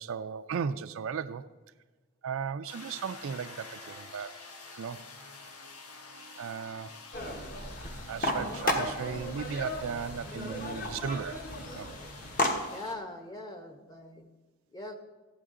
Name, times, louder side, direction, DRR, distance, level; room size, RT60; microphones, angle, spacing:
voice 1, 0.0-1.4 2.2-4.3 4.8-5.0 6.4-6.9 8.1-11.4 11.7-11.9, right 6 dB, 65° right, 0.3 m, -36 dB
sound 1, 2.7-13.0, left 3 dB, 90° left, 1.1 m, -48 dB
sound 2, 7.1-12.5, left 1 dB, 40° left, 1.1 m, -34 dB
voice 2, 12.7-14.3 14.7-15.0, left 2 dB, 15° left, 0.8 m, -41 dB
13.5 x 8.7 x 3.7 m
head